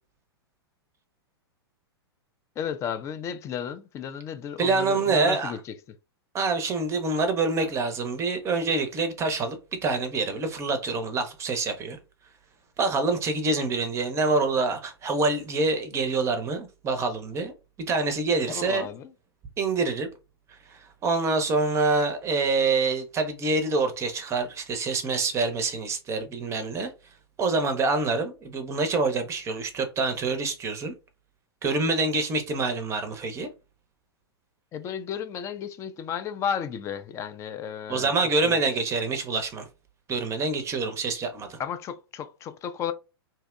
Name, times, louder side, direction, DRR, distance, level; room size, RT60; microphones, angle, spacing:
voice 1, 2.6-5.6 18.5-19.1 34.7-38.1 38.4-38.6 41.6-42.9, left 8 dB, 20° left, 0.4 m, -33 dB
voice 2, 4.6-5.5 6.3-12.0 12.8-17.5 17.9-18.9 19.6-20.1 20.5-26.9 27.4-30.9 31.6-33.5 37.9-39.7 40.1-41.6, right 3 dB, 20° right, 0.6 m, -26 dB
2.7 x 2.1 x 2.4 m
figure-of-eight pair, 100°, 13 cm